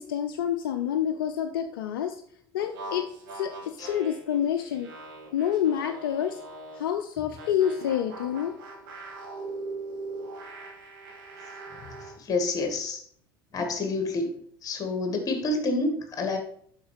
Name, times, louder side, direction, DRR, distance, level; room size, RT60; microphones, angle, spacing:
voice 1, 0.0-2.2 2.5-4.9 5.3-6.4 6.8-8.5, left 9 dB, 65° left, 7 dB, 0.6 m, -28 dB
sound 1, 2.6-6.9 7.4-12.2, right 2 dB, 60° right, 2.0 m, -41 dB
voice 2, 12.3-13.0 13.5-14.3 14.6-16.4, left 2 dB, 30° left, 5 dB, 2.0 m, -28 dB
7.1 x 5.9 x 5.1 m, 0.62 s
figure-of-eight pair, 70°, 12 cm